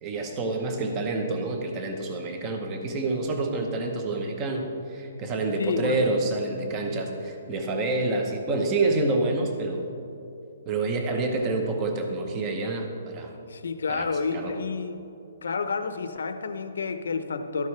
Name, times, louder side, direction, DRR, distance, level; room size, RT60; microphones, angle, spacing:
voice 1, 0.0-9.9 10.7-13.4 13.9-14.0 14.3-14.5, right 2 dB, 15° right, 4 dB, 0.8 m, -28 dB
voice 2, 5.6-6.0 13.5-15.0 15.4-17.7, left 4 dB, 80° left, 9 dB, 0.8 m, -30 dB
13.0 x 10.5 x 3.3 m, 2.7 s
hypercardioid pair, 175°, 0 cm